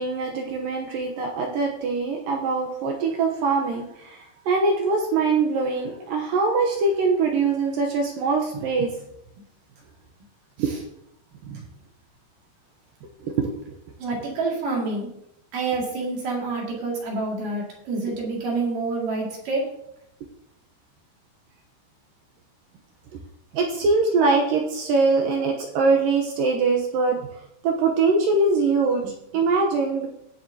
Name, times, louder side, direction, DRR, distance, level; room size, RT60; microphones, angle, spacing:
voice 1, 0.0-9.0 10.6-10.7 11.4-11.6 13.2-13.5 23.1-23.2 23.5-30.1, right 4 dB, 75° right, 1 dB, 2.1 m, -23 dB
voice 2, 14.0-15.1 15.5-19.7, right 3 dB, 55° right, -2 dB, 3.6 m, -27 dB
18.5 x 7.5 x 2.8 m, 0.79 s
omnidirectional pair, 5.1 m